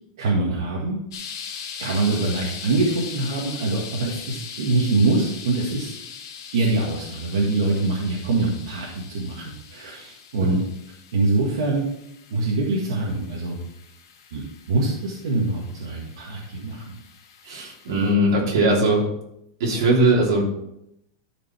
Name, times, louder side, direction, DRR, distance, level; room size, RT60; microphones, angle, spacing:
voice 1, 0.2-1.0 1.8-5.9 6.5-10.6 11.1-11.8 12.3-13.6 14.3-16.8, right 2 dB, 75° right, -2 dB, 1.9 m, -24 dB
sound 1, 1.1-18.1, left 7 dB, 60° left, 1.7 m, -40 dB
voice 2, 17.4-19.0 19.6-20.4, right 1 dB, 60° right, -2 dB, 3.1 m, -20 dB
12.5 x 5.3 x 4.4 m, 0.79 s
supercardioid pair, 180°, 3 cm